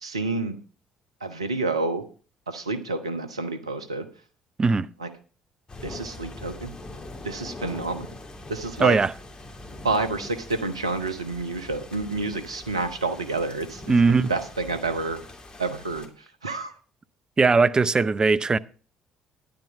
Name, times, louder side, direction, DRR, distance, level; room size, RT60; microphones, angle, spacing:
voice 1, 0.0-0.6 1.2-2.0 2.5-4.0 5.0-5.1 5.8-6.7 7.2-8.1 8.5-9.0 9.8-13.9 14.3-15.2 15.6-16.1 16.4-16.7, right 3 dB, 90° right, 0.9 m, -29 dB
sound 1, 5.7-16.1, left 2 dB, 30° left, 2.7 m, -42 dB
voice 2, 8.8-9.1 13.9-14.3 17.4-18.6, right 4 dB, 30° right, 0.6 m, -19 dB
10.5 x 8.8 x 5.0 m
figure-of-eight pair, 50°, 3 cm